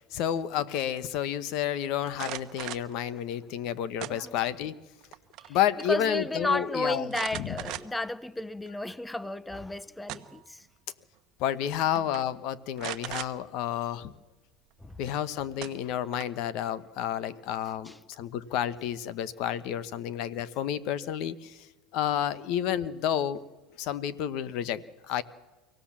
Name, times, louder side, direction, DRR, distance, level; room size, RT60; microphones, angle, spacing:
voice 1, 0.1-4.8 5.5-7.6 11.4-14.1 15.0-21.7 21.9-23.4 23.8-25.2, left 10 dB, 60° left, 1.1 m, -30 dB
sound 1, 2.1-2.9 4.0-4.6 5.0-5.5 5.8-5.9 7.1-8.1 8.7-8.8 9.8-10.5 11.5-11.7 12.0-12.2 12.8-13.3 15.1-15.2 15.6-16.5, right 15 dB, 55° right, 1.1 m, -38 dB
voice 2, 4.1-4.4 5.4-5.6 5.9-10.7 14.8-15.0 17.8-18.0, left 2 dB, 5° left, 0.6 m, -33 dB
25.0 x 17.0 x 7.4 m
supercardioid pair, 120°, 0 cm